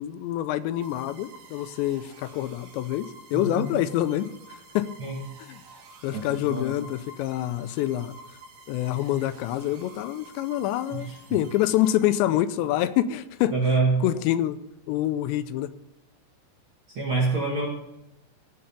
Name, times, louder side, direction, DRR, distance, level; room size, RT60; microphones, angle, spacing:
voice 1, 0.0-4.9 5.5-5.6 6.0-8.1 8.7-13.5 14.0-14.6 14.9-15.7, left 13 dB, 85° left, 13 dB, 2.9 m, -26 dB
sound 1, 0.8-12.6, right 2 dB, 90° right, 4.2 m, -49 dB
voice 2, 3.3-3.7 5.0-5.2 6.1-6.8 10.9-11.4 13.5-14.0 16.9-17.7, right 3 dB, 45° right, -3 dB, 1.8 m, -26 dB
16.5 x 5.6 x 6.9 m, 0.90 s
omnidirectional pair, 5.0 m